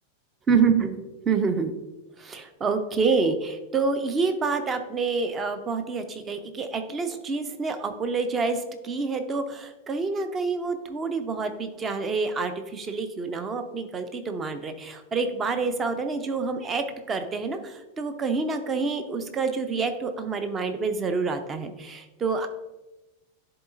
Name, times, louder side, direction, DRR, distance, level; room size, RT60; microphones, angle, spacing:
voice 1, 0.5-1.0 1.3-1.7 2.2-22.5, right 4 dB, 20° right, 8 dB, 0.6 m, -27 dB
10.5 x 3.9 x 2.5 m, 1.1 s
figure-of-eight pair, 90°, 0 cm